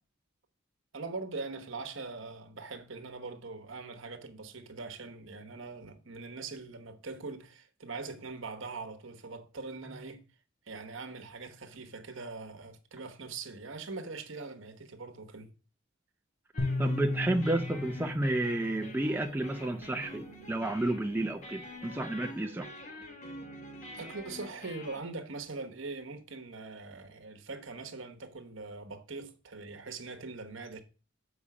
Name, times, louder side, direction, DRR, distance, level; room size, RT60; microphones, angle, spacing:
voice 1, 0.9-10.2 10.7-15.5 23.9-30.8, right 3 dB, 65° right, 1.1 m, -42 dB
sound 1, 16.5-25.0, equal, 35° left, 1.3 m, -46 dB
sound 2, 16.6-19.8, left 2 dB, 75° left, 2.2 m, -36 dB
voice 2, 16.8-22.7, right 1 dB, 10° right, 0.4 m, -31 dB
7.1 x 5.0 x 4.9 m
head